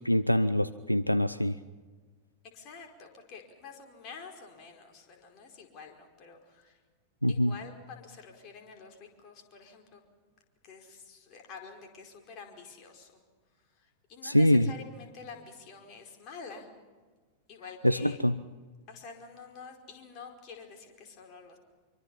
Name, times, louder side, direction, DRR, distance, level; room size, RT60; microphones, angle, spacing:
voice 1, 0.0-1.6 7.2-7.5 14.2-14.7 17.8-18.3, equal, 90° left, 15 dB, 0.6 m, -24 dB
voice 2, 2.5-6.8 7.3-10.0 10.6-13.2 13.5-16.7 17.5-18.2 18.9-21.6, left 5 dB, 40° left, 2 dB, 4.9 m, -48 dB
26.0 x 24.0 x 5.7 m, 1.4 s
figure-of-eight pair, 90°, 0 cm